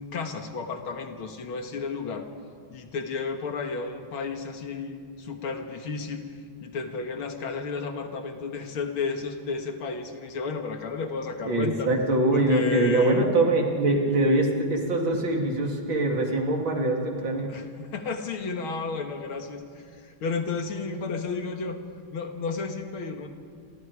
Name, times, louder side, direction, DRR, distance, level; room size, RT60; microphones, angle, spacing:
voice 1, 0.0-2.3 2.7-6.3 6.6-11.9 12.3-13.3 17.4-21.8 22.1-23.3, left 4 dB, 85° left, 5 dB, 2.5 m, -32 dB
voice 2, 11.4-17.5, right 2 dB, 70° right, 1 dB, 3.4 m, -23 dB
29.5 x 23.5 x 4.8 m, 2.1 s
omnidirectional pair, 2.2 m